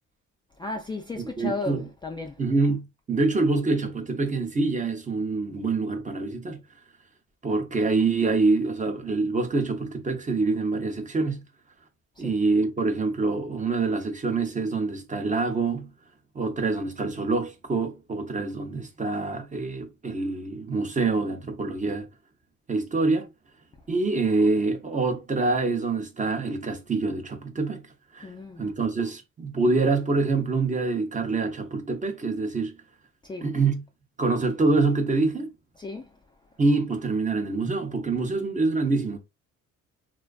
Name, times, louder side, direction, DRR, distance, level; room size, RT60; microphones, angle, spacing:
voice 1, 0.6-2.4 12.2-12.3 28.2-28.7 33.2-33.5 35.8-36.1, left 3 dB, 15° left, 0.3 m, -34 dB
voice 2, 1.1-1.9 2.4-6.6 7.4-11.4 12.2-15.9 16.3-22.1 22.7-23.3 23.9-27.8 28.1-28.3 28.6-32.7 33.4-33.8 34.2-35.5 36.6-39.2, right 3 dB, 25° right, 0.6 m, -25 dB
2.5 x 2.3 x 2.3 m
cardioid pair, 90°, 30 cm